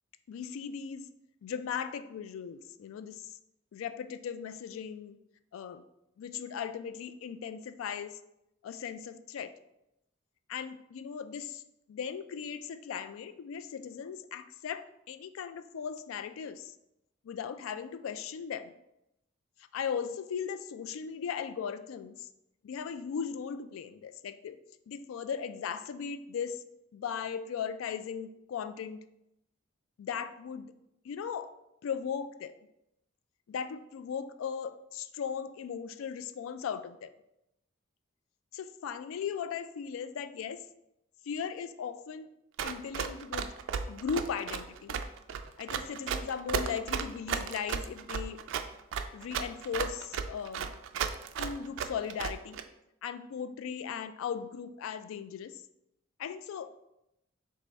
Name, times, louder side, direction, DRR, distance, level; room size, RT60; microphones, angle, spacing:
voice 1, 0.3-1.1 1.4-3.4 3.7-5.2 5.5-5.8 6.2-8.2 8.6-9.5 10.5-11.6 11.9-16.7 17.2-18.7 19.7-22.3 22.6-24.6 24.9-26.6 26.9-29.0 30.0-30.7 31.0-31.5 31.8-32.5 33.5-37.1 38.5-40.6 41.3-42.3 42.6-43.5 43.9-45.0 45.6-48.4 49.1-50.7 51.4-52.6 53.0-55.6 56.2-56.7, left 7 dB, 80° left, 12 dB, 0.3 m, -38 dB
Run, 42.6-52.6, right 7 dB, 65° right, 0.3 m, -34 dB
3.4 x 3.2 x 3.9 m, 0.84 s
head